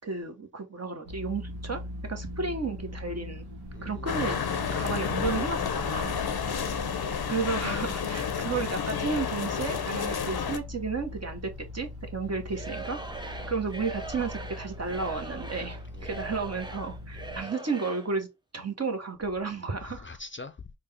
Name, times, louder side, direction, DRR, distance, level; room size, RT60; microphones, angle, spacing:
voice 1, 0.0-1.8 2.1-3.4 3.8-4.4 4.7-6.1 7.3-18.3 18.5-20.1, right 4 dB, 40° right, 1.1 m, -33 dB
sound 1, 1.0-17.4, left 1 dB, 85° right, 1.1 m, -40 dB
voice 2, 3.7-4.2 12.2-12.3 13.2-13.5 15.9-16.4 19.8-20.7, left 3 dB, 30° left, 0.5 m, -46 dB
sound 2, 4.1-10.6, left 7 dB, 80° left, 0.7 m, -31 dB
Singing / Crowd, 12.5-18.1, right 3 dB, 10° right, 0.7 m, -41 dB
3.9 x 2.3 x 3.4 m
cardioid pair, 40°, 38 cm